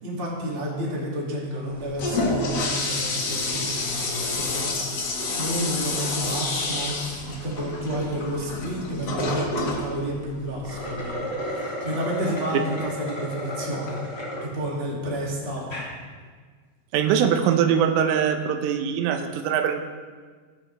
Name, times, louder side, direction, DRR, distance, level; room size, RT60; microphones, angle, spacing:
voice 1, 0.0-14.0 14.4-15.7, right 1 dB, 40° right, -4 dB, 0.8 m, -31 dB
Toilet flush, 1.7-11.1, left 2 dB, 65° left, 1.5 m, -29 dB
sound 1, 10.5-14.5 15.0-15.1 15.6-15.9, equal, 20° left, 0.7 m, -33 dB
voice 2, 16.9-19.8, right 8 dB, 90° right, 7 dB, 3.4 m, -22 dB
18.5 x 8.5 x 3.4 m, 1.5 s
omnidirectional pair, 5.6 m